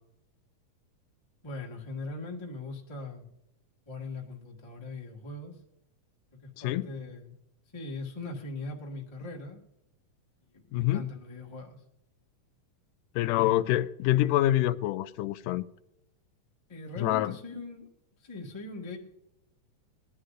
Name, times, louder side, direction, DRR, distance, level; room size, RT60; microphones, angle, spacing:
voice 1, 1.4-3.3 3.9-5.6 6.4-7.4 7.7-9.6 10.5-11.8 16.7-17.9 18.2-19.0, left 3 dB, 20° left, 0.7 m, -40 dB
voice 2, 10.7-11.0 13.2-15.7 17.0-17.3, left 14 dB, 90° left, 2.1 m, -26 dB
20.5 x 11.5 x 2.5 m
omnidirectional pair, 3.7 m